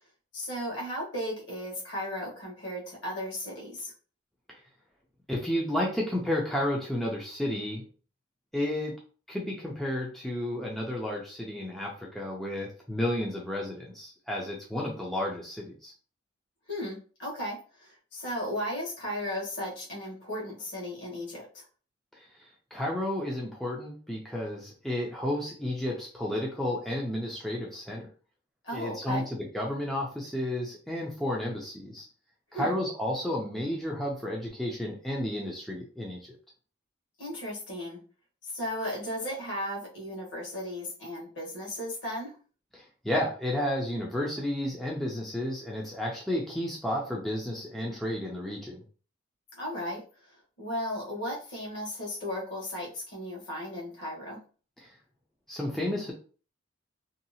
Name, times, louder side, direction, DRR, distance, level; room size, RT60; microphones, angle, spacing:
voice 1, 0.3-3.9 16.7-21.6 28.6-29.2 32.5-32.7 37.2-38.0 38.5-42.3 49.6-50.0 50.6-54.4, equal, 60° left, -4 dB, 1.2 m, -35 dB
voice 2, 5.3-7.8 8.5-8.9 9.3-15.9 22.1-28.1 28.7-32.1 32.5-36.2 42.7-48.8 54.8-54.9 55.5-56.1, left 1 dB, ahead, -3 dB, 0.4 m, -32 dB
2.7 x 2.3 x 2.7 m, 0.39 s
head